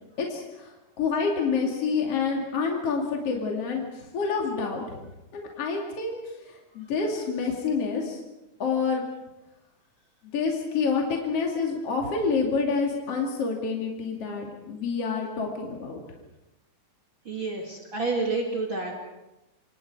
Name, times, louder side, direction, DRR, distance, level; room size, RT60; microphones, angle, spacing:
voice 1, 0.2-4.8 5.3-8.2 8.6-9.0 10.3-16.0, left 5 dB, 50° left, 0 dB, 3.4 m, -28 dB
voice 2, 17.3-18.9, right 3 dB, 40° right, 0 dB, 3.1 m, -29 dB
27.0 x 27.0 x 4.8 m, 0.98 s
omnidirectional pair, 3.5 m